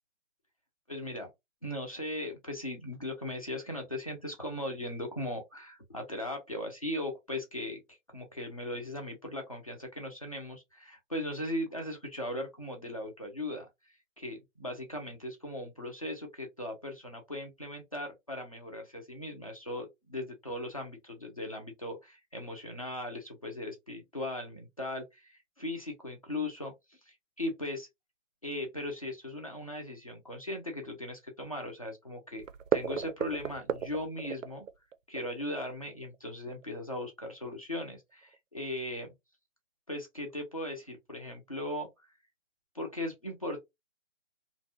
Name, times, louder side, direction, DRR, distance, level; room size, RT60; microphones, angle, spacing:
voice 1, 0.9-1.3 1.6-7.8 8.1-13.7 14.2-27.9 28.4-32.4 32.7-34.7 35.1-39.1 39.9-42.1 42.7-43.6, left 1 dB, 30° left, 0.4 m, -38 dB
sound 1, 32.4-37.0 37.4-37.5 37.8-37.9 38.2-38.4, right 8 dB, 75° right, 0.5 m, -34 dB
2.5 x 2.1 x 2.6 m
hypercardioid pair, 160°, 39 cm